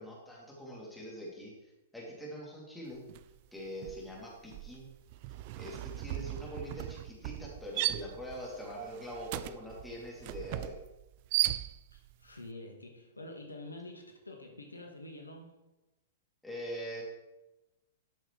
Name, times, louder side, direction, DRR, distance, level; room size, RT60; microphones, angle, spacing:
voice 1, 0.0-1.5 1.9-3.0 3.5-4.9 5.5-10.8 16.4-17.0, equal, ahead, -5 dB, 3.0 m, -43 dB
sound 1, 3.1-3.4 3.7-12.1, right 16 dB, 40° right, 0.3 m, -37 dB
voice 2, 11.9-15.5, left 2 dB, 80° left, 2 dB, 1.6 m, -47 dB
12.5 x 6.3 x 3.3 m, 1.0 s
figure-of-eight pair, 105°, 0 cm